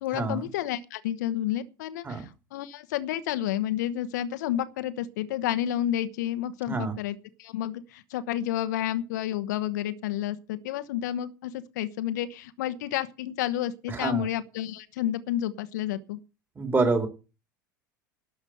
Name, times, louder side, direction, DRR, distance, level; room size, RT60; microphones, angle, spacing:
voice 1, 0.0-16.2, left 12 dB, 60° left, 1.0 m, -30 dB
voice 2, 13.9-14.3 16.6-17.1, right 3 dB, 20° right, 3.3 m, -26 dB
12.0 x 7.2 x 7.8 m
figure-of-eight pair, 75°, 11 cm